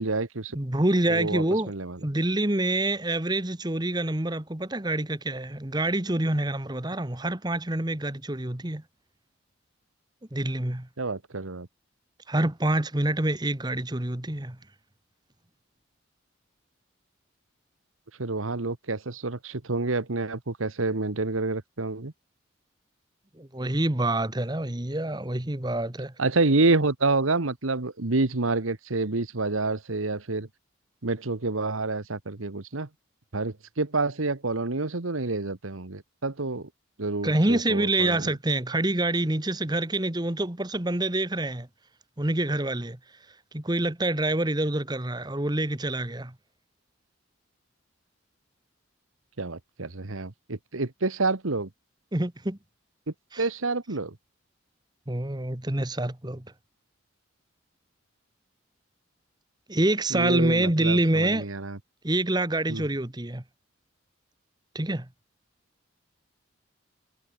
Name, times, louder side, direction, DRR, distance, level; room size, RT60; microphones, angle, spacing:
voice 1, 0.0-0.6 1.1-2.0 11.0-11.7 18.2-22.1 26.2-30.5 31.0-32.9 33.3-36.7 37.0-38.3 49.4-51.7 53.4-54.2 60.1-61.8 62.7-62.8, right 3 dB, 90° right, 1.5 m, -28 dB
voice 2, 0.5-1.7 2.0-8.8 10.3-10.9 12.3-14.6 23.4-26.1 37.2-41.7 42.2-43.0 43.5-46.3 52.1-52.6 53.3-53.5 55.1-56.4 59.7-61.5 62.0-63.4 64.7-65.1, right 1 dB, 20° right, 1.3 m, -26 dB
head